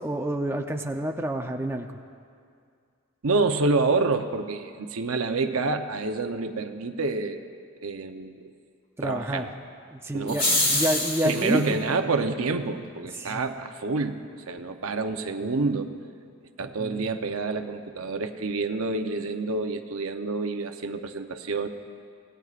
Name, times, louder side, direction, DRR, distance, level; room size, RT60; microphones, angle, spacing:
voice 1, 0.0-1.9 9.0-9.4 9.9-11.8 13.1-13.5 16.6-17.1, right 1 dB, 10° right, 2 dB, 0.6 m, -29 dB
voice 2, 3.2-7.4 7.8-8.5 9.0-9.5 10.1-10.4 11.2-14.2 14.5-15.9 16.6-21.7, right 3 dB, 80° right, 6 dB, 0.8 m, -28 dB
sound 1, 10.3-11.6, left 1 dB, 25° left, 2.6 m, -25 dB
26.0 x 18.5 x 2.5 m, 2.3 s
head